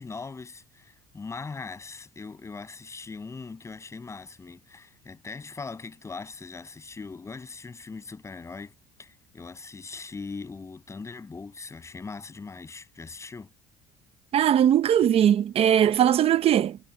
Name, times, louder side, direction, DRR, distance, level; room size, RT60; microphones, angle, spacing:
voice 1, 0.0-8.7 9.0-13.5, left 4 dB, 20° left, 7.6 m, -40 dB
voice 2, 14.3-16.8, right 10 dB, 40° right, 0.8 m, -20 dB
cardioid pair, 140°, 16 cm